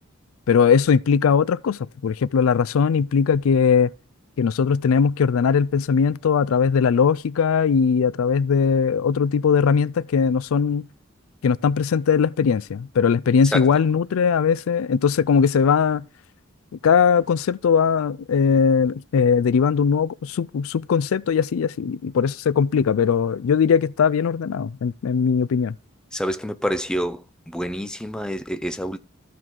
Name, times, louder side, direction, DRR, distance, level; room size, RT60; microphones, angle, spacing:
voice 1, 0.5-3.9 4.4-10.9 11.4-16.0 16.8-25.8, left 6 dB, 80° left, 0.4 m, -20 dB
voice 2, 26.1-29.0, equal, 5° left, 0.5 m, -27 dB
14.0 x 4.7 x 3.7 m
head